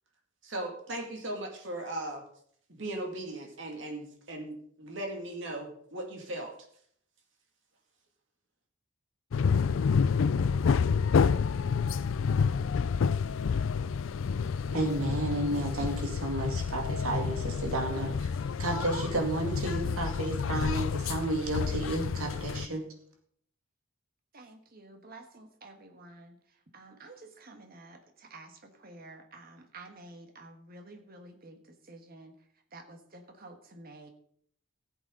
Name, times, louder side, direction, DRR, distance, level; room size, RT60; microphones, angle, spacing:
voice 1, 0.4-2.2 2.7-6.5, right 1 dB, 60° right, 2 dB, 2.3 m, -38 dB
sound 1, 9.3-22.7, left 6 dB, 65° left, 0.4 m, -29 dB
voice 2, 14.7-18.3 18.6-22.9, right 2 dB, 90° right, 2 dB, 2.2 m, -32 dB
voice 3, 24.3-26.4 26.7-32.3 32.7-34.1, right 2 dB, 45° right, 5 dB, 1.5 m, -50 dB
15.0 x 8.2 x 3.9 m, 0.64 s
head